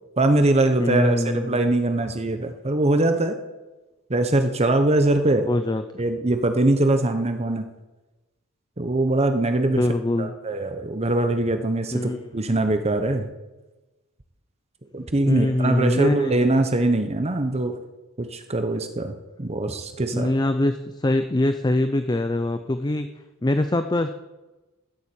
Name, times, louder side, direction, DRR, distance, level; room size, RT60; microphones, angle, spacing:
voice 1, 0.2-3.3 4.1-5.5 6.0-7.7 8.8-9.8 10.2-13.3 14.9-17.8 18.2-20.3, right 2 dB, 30° right, 7 dB, 0.9 m, -22 dB
voice 2, 0.8-1.6 5.4-5.8 9.7-10.3 11.9-12.3 15.3-16.6 20.1-23.1 23.4-24.1, left 1 dB, 20° left, 8 dB, 0.5 m, -23 dB
13.0 x 7.3 x 8.5 m, 1.1 s
head